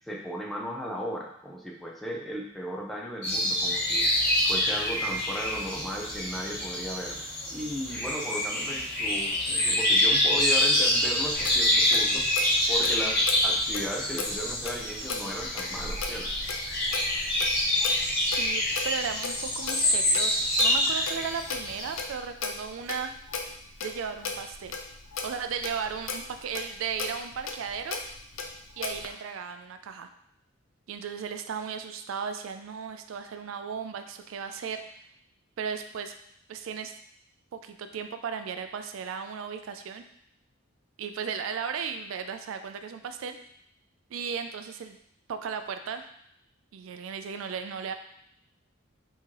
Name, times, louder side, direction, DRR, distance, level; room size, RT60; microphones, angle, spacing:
voice 1, 0.0-4.1 4.4-7.2 7.5-12.3 12.7-16.3, equal, ahead, -1 dB, 0.5 m, -36 dB
sound 1, 3.2-22.0, left 1 dB, 55° left, 1.8 m, -26 dB
Clock, 11.3-29.1, left 4 dB, 70° left, 0.6 m, -38 dB
voice 2, 18.2-23.1 23.8-24.8 25.2-28.0 28.8-30.1 30.9-35.0 35.6-36.1 36.5-36.9 37.5-40.0 41.0-43.4 44.1-45.0 45.3-46.0 46.7-47.9, right 6 dB, 70° right, 8 dB, 0.3 m, -35 dB
3.7 x 3.0 x 4.5 m, 0.72 s
head